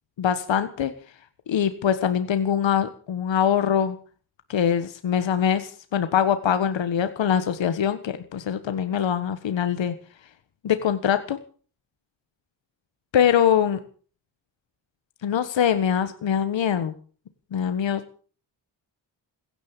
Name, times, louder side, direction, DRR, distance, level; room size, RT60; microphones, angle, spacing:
voice 1, 0.2-0.9 1.5-4.0 4.5-9.9 10.6-11.4 13.1-13.8 15.2-16.9 17.5-18.2, left 8 dB, 75° left, 10 dB, 1.5 m, -23 dB
16.0 x 10.5 x 8.2 m, 0.43 s
cardioid pair, 50°, 45 cm